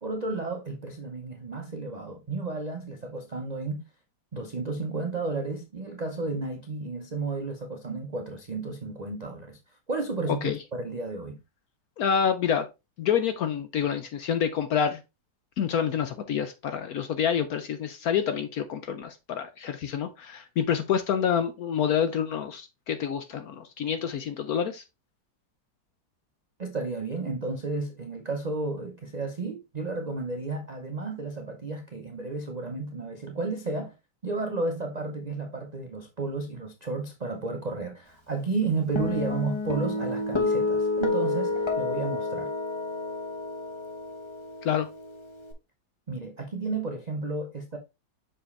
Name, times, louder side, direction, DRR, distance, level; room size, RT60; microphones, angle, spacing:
voice 1, 0.0-3.8 4.3-9.6 9.9-11.4 26.6-33.9 34.2-42.5 46.1-47.8, right 3 dB, 85° right, 0.3 m, -32 dB
voice 2, 12.0-12.7 13.0-15.0 15.6-24.8 44.6-44.9, left 8 dB, 70° left, 0.9 m, -27 dB
Guitar, 39.0-45.5, left 3 dB, 25° left, 0.6 m, -29 dB
6.2 x 4.8 x 3.2 m
omnidirectional pair, 2.1 m